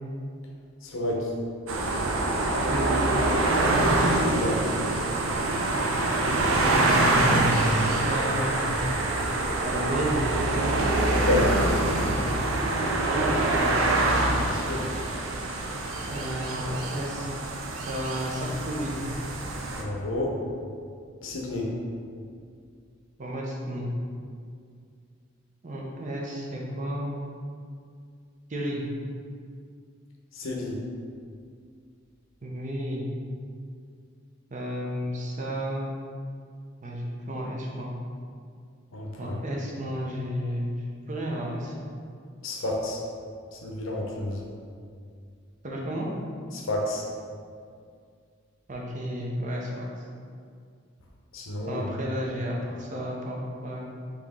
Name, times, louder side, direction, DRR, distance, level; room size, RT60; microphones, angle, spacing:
voice 1, 0.8-1.4 4.3-4.6 11.1-11.5 14.4-14.9 19.7-20.4 21.2-21.7 30.3-30.8 38.9-39.4 42.4-43.0 43.5-44.4 46.5-47.0 51.3-51.8, left 2 dB, 80° left, -1 dB, 0.7 m, -30 dB
sound 1, 1.7-19.8, right 2 dB, 85° right, 0.5 m, -25 dB
voice 2, 6.8-8.6 9.6-10.2 13.0-13.8 16.0-17.3 17.9-19.0 23.2-23.9 25.6-27.1 28.5-28.8 32.4-33.1 34.5-35.9 36.8-37.9 39.2-40.8 41.1-41.7 45.6-46.1 48.7-49.9 51.7-53.8, equal, 40° right, -2 dB, 0.6 m, -32 dB
4.2 x 3.0 x 3.6 m, 2.2 s
head